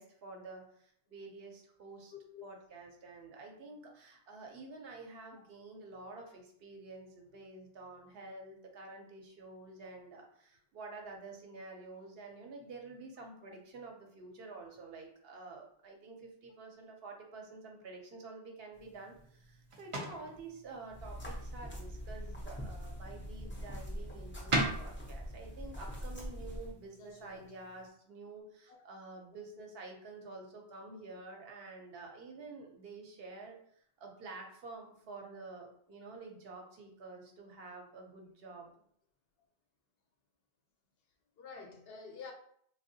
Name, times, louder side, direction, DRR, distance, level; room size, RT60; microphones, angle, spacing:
voice 1, 0.0-2.1 2.4-33.6 34.0-38.7, right 3 dB, 70° right, 0.8 m, -49 dB
voice 2, 2.1-2.5 27.0-27.6 28.7-28.8 41.4-42.3, left 5 dB, 70° left, 0.8 m, -49 dB
sound 1, 18.7-27.9, right 2 dB, 45° right, 0.4 m, -42 dB
sound 2, 20.9-26.7, equal, 15° left, 0.4 m, -43 dB
3.4 x 2.2 x 2.6 m
omnidirectional pair, 1.1 m